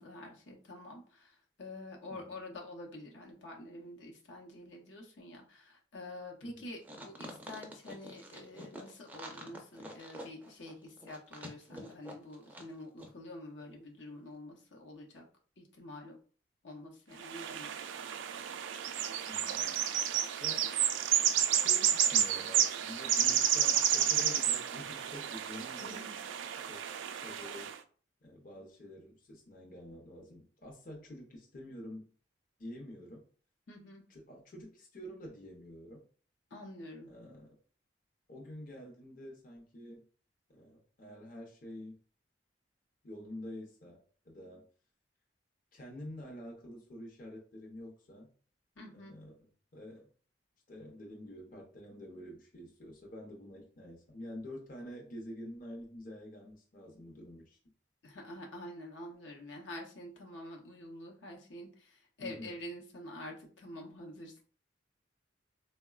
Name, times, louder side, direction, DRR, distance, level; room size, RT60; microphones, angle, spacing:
voice 1, 0.0-15.2 15.6-16.2 16.6-17.7 25.8-26.2 33.7-34.0 36.5-37.1 48.8-49.2 58.0-64.4, left 1 dB, 80° left, 0 dB, 0.7 m, -47 dB
sound 1, 6.8-12.7 13.0-13.1, equal, 10° right, 0.4 m, -47 dB
sound 2, 17.2-27.8, right 10 dB, 85° right, 0.3 m, -31 dB
voice 2, 19.3-20.7 21.5-26.0 26.7-26.8 27.1-27.7 28.2-32.1 32.6-33.2 34.1-36.0 37.1-37.6 38.3-40.0 40.5-42.0 43.0-44.7 45.7-48.3 48.9-50.1 50.7-57.6 62.2-62.6, left 1 dB, 45° left, 0 dB, 0.6 m, -48 dB
3.7 x 2.1 x 2.3 m, 0.41 s
head